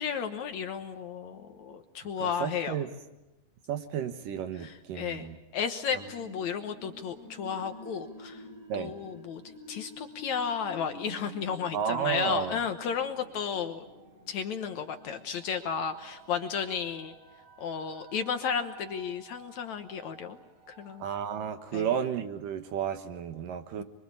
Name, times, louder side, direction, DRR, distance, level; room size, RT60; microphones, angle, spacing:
voice 1, 0.0-2.8 4.6-8.4 8.7-9.4 9.7-13.8 14.3-17.1 17.6-20.4 20.7-21.0 21.7-21.9 23.8-23.9, left 7 dB, 65° left, 7 dB, 2.1 m, -33 dB
voice 2, 2.2-2.9 3.7-5.4 8.7-8.9 11.7-12.6 21.0-23.8, right 8 dB, 70° right, 8 dB, 2.9 m, -32 dB
sound 1, 5.9-21.4, equal, 45° right, 5.5 m, -50 dB
25.0 x 24.0 x 8.4 m, 0.98 s
omnidirectional pair, 4.2 m